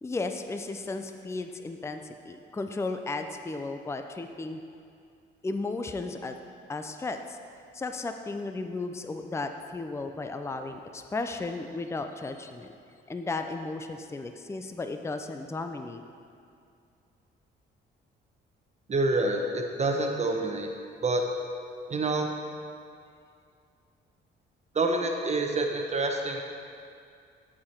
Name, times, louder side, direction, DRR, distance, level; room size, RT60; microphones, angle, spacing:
voice 1, 0.0-4.6 5.4-6.4 6.7-7.4 7.7-12.7 13.1-16.0, left 3 dB, 15° left, 6 dB, 0.5 m, -34 dB
voice 2, 18.9-20.7 21.0-21.2 21.9-22.3 24.7-26.4, right 2 dB, 35° right, 3 dB, 1.0 m, -27 dB
14.0 x 4.9 x 4.4 m, 2.4 s
cardioid pair, 90°, 20 cm